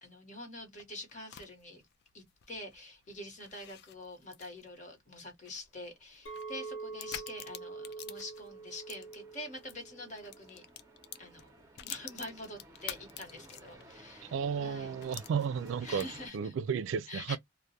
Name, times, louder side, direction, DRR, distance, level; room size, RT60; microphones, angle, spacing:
voice 1, 0.0-1.8 2.1-10.6 11.2-11.5 11.8-15.2 15.8-16.5 17.1-17.4, left 1 dB, 40° left, 1.1 m, -46 dB
sound 1, 0.6-9.8 10.1-14.0 14.4-14.5 15.0-16.3, left 10 dB, 55° left, 0.3 m, -49 dB
sound 2, 5.7-16.3, right 2 dB, 15° right, 0.7 m, -57 dB
Chink clink, 6.3-10.6 10.9-11.4, right 4 dB, 85° left, 0.8 m, -45 dB
voice 2, 14.3-16.1 16.3-17.4, right 6 dB, 85° right, 0.3 m, -33 dB
2.3 x 2.1 x 2.7 m
head